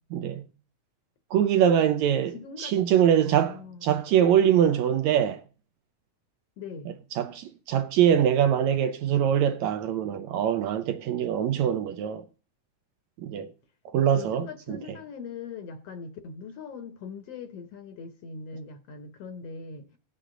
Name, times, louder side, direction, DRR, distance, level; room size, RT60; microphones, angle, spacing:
voice 1, 0.1-0.5 1.3-5.4 7.1-12.3 13.2-13.5 13.9-14.8, right 9 dB, 75° right, 1.7 m, -23 dB
voice 2, 2.3-2.8 3.3-3.8 6.6-6.9 14.1-20.0, left 5 dB, 65° left, 1.7 m, -41 dB
18.0 x 6.6 x 3.7 m
omnidirectional pair, 3.7 m